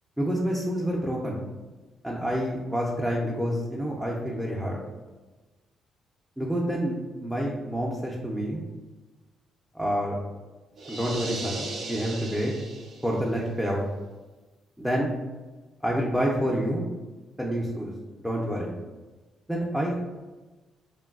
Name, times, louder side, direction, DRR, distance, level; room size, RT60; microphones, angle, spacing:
voice 1, 0.2-1.4 2.0-4.8 6.4-8.6 9.7-10.2 10.9-12.5 13.0-13.8 14.8-15.1 15.8-16.8 17.4-17.9 18.2-18.7 19.5-20.0, equal, 5° right, -3 dB, 0.4 m, -28 dB
sound 1, 10.8-13.3, right 2 dB, 65° right, 0.5 m, -37 dB
3.1 x 2.2 x 2.3 m, 1.2 s
cardioid pair, 90°, 0 cm